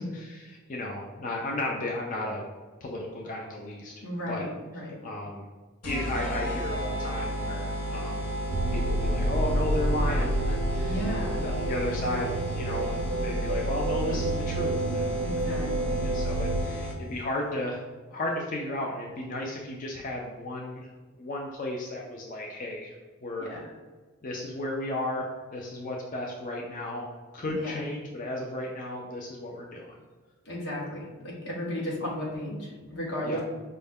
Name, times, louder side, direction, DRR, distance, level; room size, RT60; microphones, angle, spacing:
voice 1, 0.0-2.4 2.8-3.9 4.3-4.4 5.0-5.4 5.8-8.3 8.7-11.1 11.4-15.1 15.4-15.6 16.0-17.8 18.1-20.9 21.2-22.9 23.2-23.6 24.2-27.1 27.3-29.9 33.2-33.4, left 1 dB, 40° left, -1 dB, 0.4 m, -34 dB
voice 2, 4.0-5.0 10.8-11.4 15.2-16.0 23.4-23.7 27.5-27.8 30.4-33.4, left 1 dB, 55° left, -4 dB, 1.2 m, -34 dB
sound 1, 5.8-17.2, equal, 85° left, 0.8 m, -34 dB
sound 2, 8.5-16.6, right 1 dB, 60° right, 0.4 m, -29 dB
5.3 x 2.1 x 3.5 m, 1.3 s
head